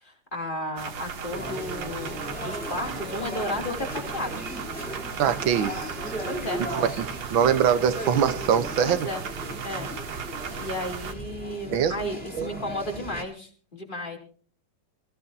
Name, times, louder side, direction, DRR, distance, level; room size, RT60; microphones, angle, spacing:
voice 1, 0.0-4.4 6.3-6.6 8.8-9.2 9.6-9.9 10.6-14.2, left 1 dB, 25° left, 3.0 m, -33 dB
sound 1, 0.8-11.1, right 6 dB, 70° right, 2.0 m, -36 dB
sound 2, 1.3-13.2, equal, 5° left, 3.2 m, -37 dB
voice 2, 5.2-5.9 6.7-9.1 11.7-11.9 12.4-12.5, right 8 dB, 90° right, 1.8 m, -23 dB
26.0 x 15.5 x 2.7 m
omnidirectional pair, 2.1 m